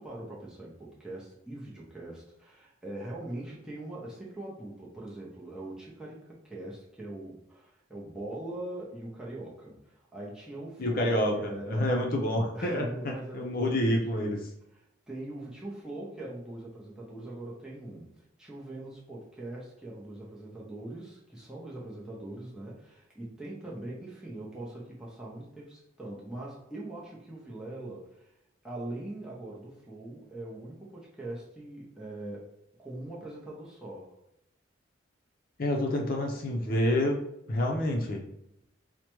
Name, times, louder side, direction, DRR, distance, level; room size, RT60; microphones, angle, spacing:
voice 1, 0.0-11.9 12.5-14.0 14.7-28.3 28.6-32.5 32.8-34.1, right 1 dB, 5° right, -6 dB, 0.6 m, -42 dB
voice 2, 10.8-14.4 35.6-37.2 37.5-38.2, left 1 dB, 45° left, 1 dB, 0.6 m, -28 dB
4.7 x 2.1 x 3.0 m, 0.79 s
head